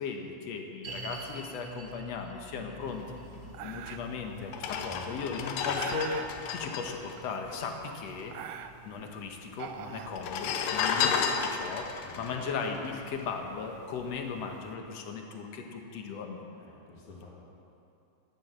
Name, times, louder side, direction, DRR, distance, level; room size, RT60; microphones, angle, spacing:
voice 1, 0.0-3.0 3.6-6.2 6.5-8.4 8.8-16.4, left 5 dB, 60° left, 3 dB, 2.1 m, -37 dB
sound 1, 0.8-12.1 12.4-12.5 13.1-13.2, right 2 dB, 50° right, 0.9 m, -48 dB
sound 2, 3.5-4.2 5.0-6.3 7.2-7.8 8.1-9.0 9.5-10.7, right 9 dB, 75° right, 1.7 m, -42 dB
sound 3, 3.8-3.9 4.5-8.2 8.4-8.5 8.7-9.4 10.1-13.6 14.0-14.2, left 6 dB, 85° left, 2.5 m, -32 dB
voice 2, 4.3-5.2 11.9-12.4 16.6-17.3, left 3 dB, 45° left, -4 dB, 3.3 m, -50 dB
12.0 x 11.0 x 7.6 m, 2.7 s
omnidirectional pair, 3.7 m